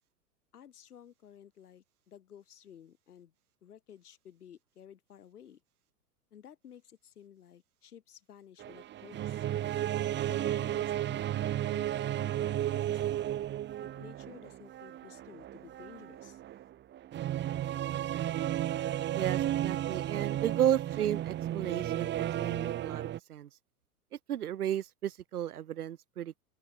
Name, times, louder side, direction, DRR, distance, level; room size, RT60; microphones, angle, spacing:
voice 1, 0.5-3.3 3.6-5.6 6.3-9.5 10.3-13.2 13.8-16.4, left 9 dB, 70° left, 6.0 m, -54 dB
sound 1, 8.6-23.2, right 12 dB, 25° right, 1.3 m, -33 dB
voice 2, 19.1-23.5 24.3-26.3, right 11 dB, 70° right, 1.8 m, -33 dB
open air
figure-of-eight pair, 100°, 47 cm